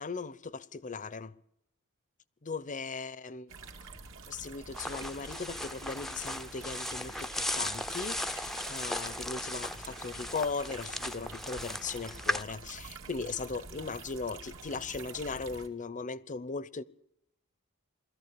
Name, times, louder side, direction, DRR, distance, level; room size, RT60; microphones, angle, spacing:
voice 1, 0.0-1.3 2.4-3.5 4.3-16.8, left 4 dB, 35° left, 0.7 m, -38 dB
sound 1, 3.5-15.7, right 4 dB, 65° right, 2.3 m, -47 dB
sound 2, 4.7-12.4, left 1 dB, ahead, 0.7 m, -37 dB
21.5 x 14.5 x 8.5 m
head